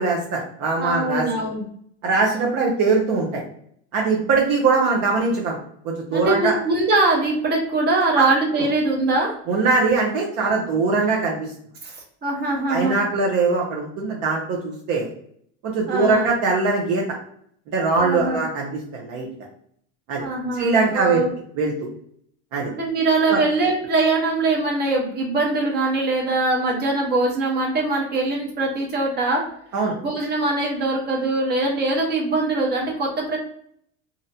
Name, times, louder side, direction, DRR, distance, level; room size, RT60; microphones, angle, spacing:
voice 1, 0.0-1.3 2.0-3.4 3.9-5.6 5.8-6.6 8.2-8.3 9.5-11.5 12.7-15.1 15.6-17.0 17.7-19.3 20.1-20.2 20.6-21.2 21.6-21.7 22.5-22.7 23.3-23.4 29.7-29.9, right 4 dB, 55° right, -1 dB, 0.7 m, -21 dB
voice 2, 0.8-1.6 6.1-9.3 10.5-10.6 11.8-13.0 15.9-16.3 18.0-18.4 20.2-21.3 22.7-29.5 30.0-33.4, right 2 dB, 30° right, -1 dB, 0.9 m, -22 dB
2.6 x 2.1 x 2.6 m, 0.65 s
supercardioid pair, 125°, 35 cm